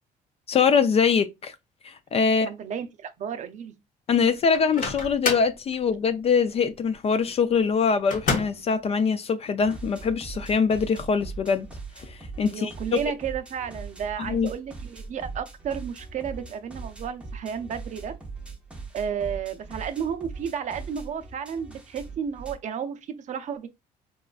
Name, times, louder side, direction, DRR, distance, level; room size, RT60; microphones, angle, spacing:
voice 1, 0.5-1.5 1.8-2.5 4.1-11.7 12.0-13.0 14.3-14.5, left 5 dB, 35° left, 0.3 m, -23 dB
voice 2, 2.4-3.8 12.5-18.2 18.9-23.7, right 7 dB, 45° right, 0.5 m, -32 dB
Microwave oven, 4.5-5.6 8.1-8.7, left 4 dB, 50° left, 1.0 m, -28 dB
sound 1, 9.6-22.5, right 4 dB, 5° right, 0.7 m, -40 dB
4.0 x 2.3 x 2.3 m
cardioid pair, 110°, 17 cm